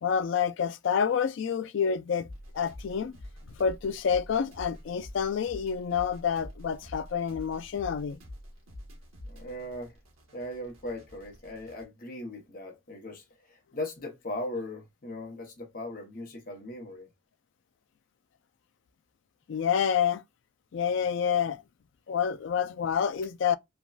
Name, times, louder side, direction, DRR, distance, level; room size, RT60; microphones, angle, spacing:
voice 1, 0.0-2.3 2.5-3.2 3.6-8.2 19.5-20.2 20.7-21.6 22.1-23.6, left 7 dB, 60° left, 0.3 m, -28 dB
sound 1, 2.2-11.8, left 1 dB, 85° right, 1.3 m, -47 dB
voice 2, 9.3-10.0 10.3-17.1, left 1 dB, 40° left, 0.8 m, -39 dB
3.3 x 2.2 x 2.4 m
head